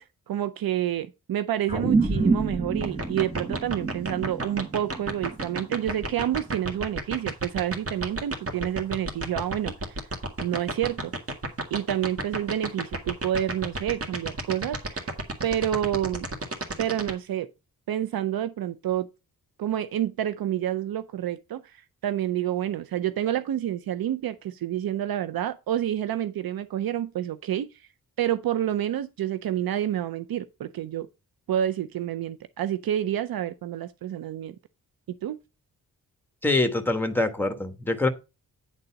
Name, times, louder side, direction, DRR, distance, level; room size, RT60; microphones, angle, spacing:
voice 1, 0.0-10.1 10.4-11.1 11.7-15.1 15.4-16.3 16.8-17.5 17.9-19.1 19.6-27.7 28.2-31.1 31.5-34.5 35.2-35.4, right 11 dB, 75° right, 0.6 m, -28 dB
sound 1, 1.7-6.4, right 3 dB, 15° right, 1.2 m, -28 dB
sound 2, 2.8-17.1, right 2 dB, 40° right, 1.9 m, -30 dB
voice 2, 36.4-38.1, left 2 dB, 5° left, 1.3 m, -24 dB
9.6 x 3.9 x 5.7 m
cardioid pair, 90°, 36 cm